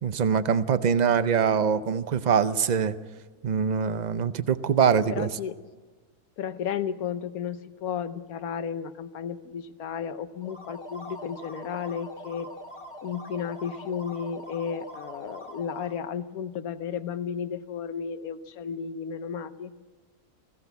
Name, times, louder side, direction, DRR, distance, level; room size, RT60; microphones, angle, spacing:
voice 1, 0.0-3.0 3.4-5.3, right 7 dB, 55° right, 13 dB, 0.5 m, -23 dB
voice 2, 5.1-5.6 6.4-12.5 13.0-19.7, left 7 dB, 75° left, 11 dB, 1.3 m, -33 dB
sound 1, 10.4-16.1, left 1 dB, 20° left, 1.6 m, -43 dB
20.0 x 16.0 x 8.1 m, 1.3 s
omnidirectional pair, 1.6 m